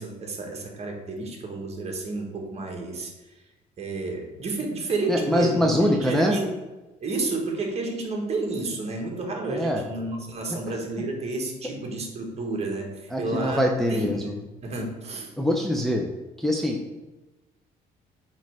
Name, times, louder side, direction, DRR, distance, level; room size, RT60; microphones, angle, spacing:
voice 1, 0.0-3.4 3.8-6.5 7.0-13.6 13.9-14.4 14.6-15.3, right 2 dB, 40° right, 1 dB, 1.5 m, -31 dB
voice 2, 5.1-6.4 9.5-9.8 13.1-14.4 15.4-16.1 16.4-17.0, equal, ahead, 0 dB, 0.7 m, -23 dB
8.3 x 3.1 x 4.8 m, 1.1 s
cardioid pair, 110°, 17 cm